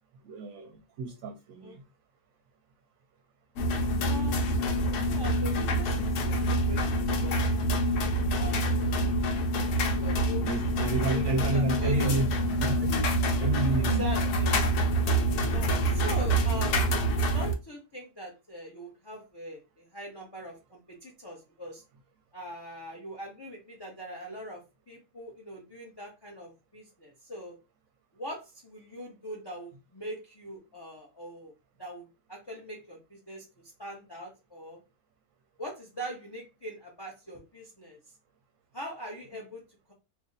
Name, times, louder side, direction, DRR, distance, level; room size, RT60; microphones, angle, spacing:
voice 1, 0.2-1.8 10.4-12.3 12.5-13.1 13.4-14.1, right 2 dB, 70° right, 0.9 m, -30 dB
sound 1, 3.6-17.5, right 1 dB, 85° left, 1.2 m, -26 dB
voice 2, 4.0-4.7 5.0-7.6 8.3-9.1 9.7-10.5 11.0-12.1 13.8-14.6 15.3-21.8 22.3-27.6 28.1-31.5 31.8-33.5 33.8-34.8 35.6-38.0 38.7-39.9, equal, 30° left, 0.4 m, -42 dB
2.7 x 2.6 x 3.8 m
omnidirectional pair, 1.6 m